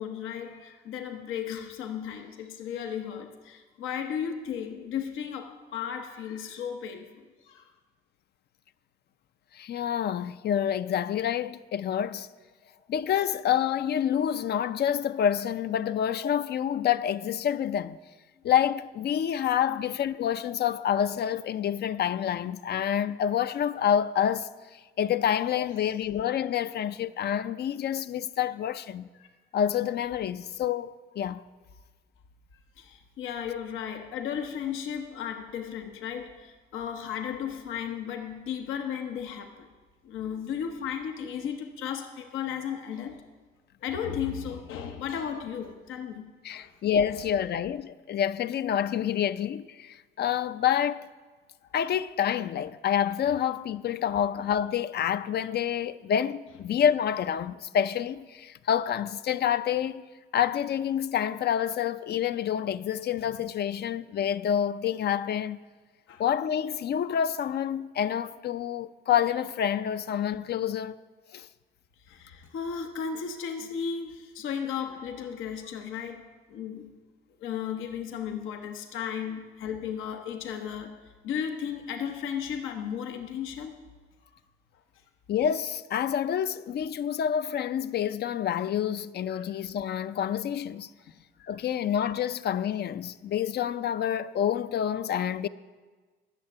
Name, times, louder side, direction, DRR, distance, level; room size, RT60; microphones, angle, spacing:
voice 1, 0.0-7.7 12.7-12.8 25.2-25.3 29.1-29.3 32.8-39.7 40.0-43.2 43.8-46.7 51.6-51.7 54.1-54.2 66.1-66.2 72.1-76.9 77.4-83.8 89.3-89.5 91.4-91.5, left 8 dB, 90° left, 0.9 m, -35 dB
voice 2, 9.5-12.3 12.9-18.0 18.4-29.1 29.5-31.4 46.4-51.1 51.7-60.0 60.3-65.6 66.2-71.0 71.3-71.5 85.3-90.9 91.5-95.5, left 9 dB, 55° left, 0.4 m, -28 dB
11.5 x 6.7 x 8.5 m
cardioid pair, 90°, 20 cm